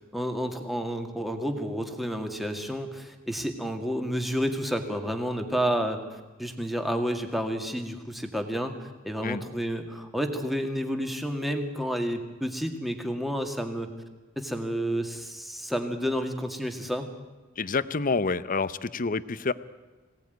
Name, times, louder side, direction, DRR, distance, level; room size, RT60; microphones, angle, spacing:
voice 1, 0.0-13.9 14.4-17.1, equal, ahead, 5 dB, 2.1 m, -30 dB
voice 2, 17.6-19.5, left 4 dB, 40° left, 15 dB, 0.8 m, -28 dB
23.5 x 18.0 x 9.4 m, 1.3 s
head